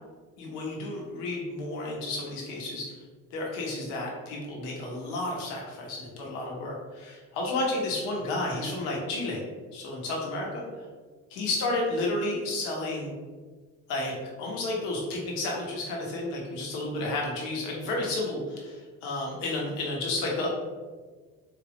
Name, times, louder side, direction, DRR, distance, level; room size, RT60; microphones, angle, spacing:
voice 1, 0.4-3.0 3.3-9.4 9.7-10.9 11.3-13.1 13.9-20.5, left 2 dB, 80° left, -2 dB, 1.3 m, -31 dB
4.3 x 3.4 x 3.5 m, 1.4 s
hypercardioid pair, 55°, 45 cm